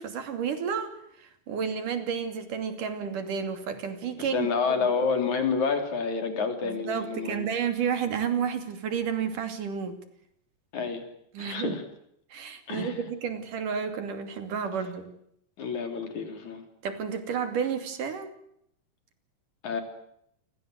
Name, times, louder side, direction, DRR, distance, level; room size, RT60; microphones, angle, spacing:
voice 1, 0.0-4.5 6.6-10.0 11.3-11.8 12.3-15.1 16.8-18.3, right 7 dB, 85° right, 8 dB, 4.4 m, -31 dB
voice 2, 4.2-7.4 10.7-11.0 11.4-11.8 12.7-13.0 15.6-16.6 19.6-19.8, left 5 dB, 65° left, 7 dB, 4.9 m, -29 dB
29.0 x 24.0 x 8.1 m, 0.74 s
omnidirectional pair, 3.6 m